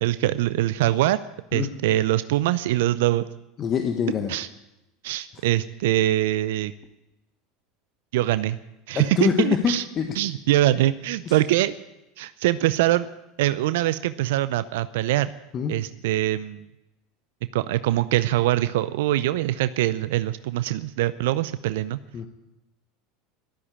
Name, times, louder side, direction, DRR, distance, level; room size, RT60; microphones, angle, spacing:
voice 1, 0.0-1.2 1.5-3.3 4.3-4.5 5.0-6.7 8.1-8.6 8.9-9.8 10.2-11.7 12.2-13.1 13.4-15.3 15.7-16.6 17.5-22.0, right 15 dB, 70° right, 14 dB, 0.5 m, -23 dB
voice 2, 3.6-4.3 8.9-10.1 11.3-11.4 15.5-15.7 22.1-22.3, left 7 dB, 40° left, 5 dB, 1.4 m, -24 dB
13.0 x 13.0 x 8.4 m, 0.94 s
hypercardioid pair, 80°, 0 cm